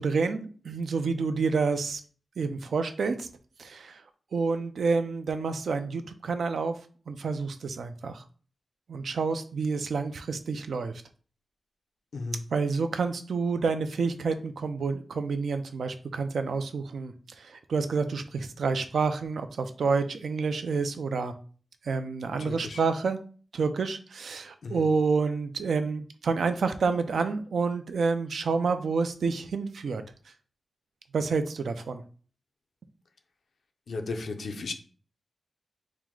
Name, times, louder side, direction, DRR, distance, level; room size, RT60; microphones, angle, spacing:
voice 1, 0.0-2.0 2.4-3.3 3.6-4.0 4.3-6.8 7.1-8.2 8.9-10.9 12.5-21.3 21.8-23.2 23.5-30.0 31.1-32.0, right 4 dB, 70° right, 8 dB, 0.4 m, -28 dB
voice 2, 22.5-22.8 24.6-24.8 33.9-34.7, left 3 dB, 65° left, 4 dB, 0.5 m, -34 dB
4.6 x 2.1 x 3.7 m, 0.41 s
wide cardioid pair, 175°, 0 cm